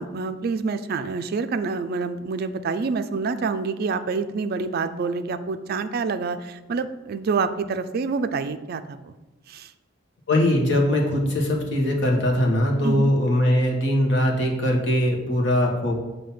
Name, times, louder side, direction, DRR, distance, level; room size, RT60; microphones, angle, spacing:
voice 1, 0.0-9.1 9.5-9.7 12.8-13.1, right 4 dB, 50° right, 10 dB, 0.4 m, -27 dB
voice 2, 10.3-15.9, left 1 dB, 65° left, -1 dB, 1.2 m, -21 dB
7.0 x 2.7 x 5.8 m, 1.1 s
head